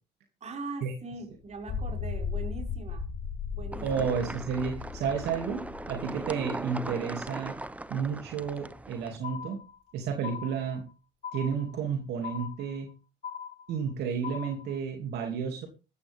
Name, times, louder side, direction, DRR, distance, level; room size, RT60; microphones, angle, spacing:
voice 1, 0.4-3.0 3.5-4.0, right 3 dB, 40° right, 3 dB, 6.1 m, -41 dB
sound 1, 1.5-8.0, left 6 dB, 70° left, 6.2 m, -37 dB
sound 2, 3.7-9.2, right 2 dB, 10° right, 0.8 m, -39 dB
voice 2, 3.8-7.6 7.9-9.6 9.9-10.9 11.3-12.9 13.7-15.7, right 6 dB, 75° right, 3 dB, 2.7 m, -32 dB
sound 3, 9.2-9.9 10.2-10.9 11.2-11.9 12.2-12.9 13.2-13.9 14.2-14.8, left 8 dB, 50° left, 2.6 m, -40 dB
15.5 x 13.5 x 3.6 m, 0.32 s
cardioid pair, 110°, 17 cm